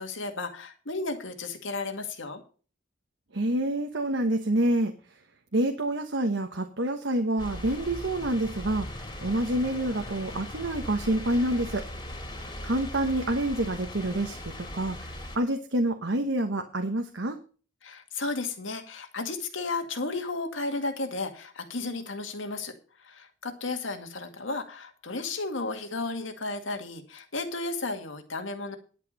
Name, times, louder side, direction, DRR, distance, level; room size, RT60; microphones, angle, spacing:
voice 1, 0.0-2.4 17.8-22.7 23.0-28.8, left 3 dB, 85° left, 6 dB, 2.1 m, -33 dB
voice 2, 3.3-4.9 5.5-8.9 9.2-11.8 12.6-17.4, right 1 dB, 80° right, 5 dB, 1.2 m, -27 dB
sound 1, 7.4-15.4, left 1 dB, 20° left, 2.3 m, -39 dB
11.0 x 8.4 x 5.4 m, 0.38 s
head